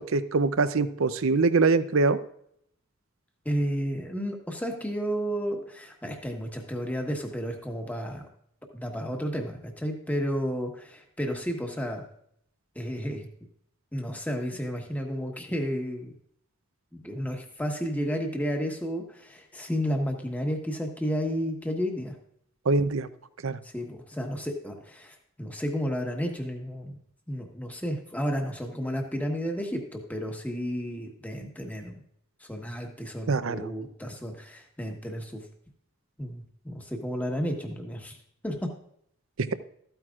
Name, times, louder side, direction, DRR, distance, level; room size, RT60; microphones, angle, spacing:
voice 1, 0.1-2.2 22.7-23.1 23.4-23.6 33.3-33.7 39.4-39.5, right 3 dB, 75° right, 13 dB, 0.6 m, -23 dB
voice 2, 3.4-8.2 8.7-12.1 12.7-13.3 13.9-16.2 16.9-22.1 23.6-27.0 27.3-32.0 32.5-35.4 36.2-38.2 38.4-38.7, equal, 5° left, 2 dB, 1.3 m, -32 dB
13.5 x 9.1 x 2.4 m, 0.70 s
head